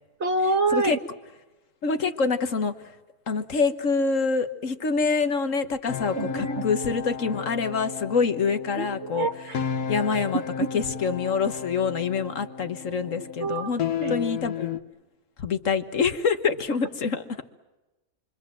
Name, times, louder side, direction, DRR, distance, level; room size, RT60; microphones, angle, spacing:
voice 1, 0.2-1.0 6.1-6.6 8.8-9.6 13.4-13.7 14.0-14.2, right 2 dB, 50° right, 7 dB, 1.6 m, -26 dB
voice 2, 1.8-3.0 3.3-9.3 9.9-13.8 14.1-14.8 15.4-17.2, left 5 dB, 60° left, 9 dB, 1.6 m, -26 dB
sound 1, 5.9-14.8, left 7 dB, 90° left, 1.6 m, -33 dB
28.0 x 24.5 x 7.6 m, 1.1 s
omnidirectional pair, 1.6 m